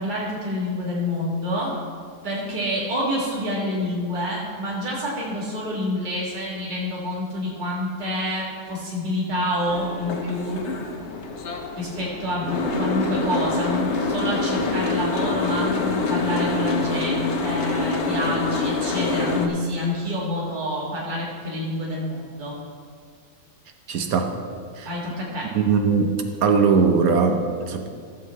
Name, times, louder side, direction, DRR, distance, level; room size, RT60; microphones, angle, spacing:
voice 1, 0.0-1.7 2.2-10.6 11.8-22.6 24.8-25.5, left 1 dB, 30° right, -5 dB, 2.0 m, -27 dB
Boat Water vehicle, 9.7-19.5, left 3 dB, 55° left, 1.0 m, -26 dB
voice 2, 23.9-24.3 25.5-26.1 26.4-27.9, right 5 dB, 70° right, 5 dB, 1.2 m, -19 dB
14.5 x 7.2 x 3.2 m, 2.2 s
omnidirectional pair, 1.6 m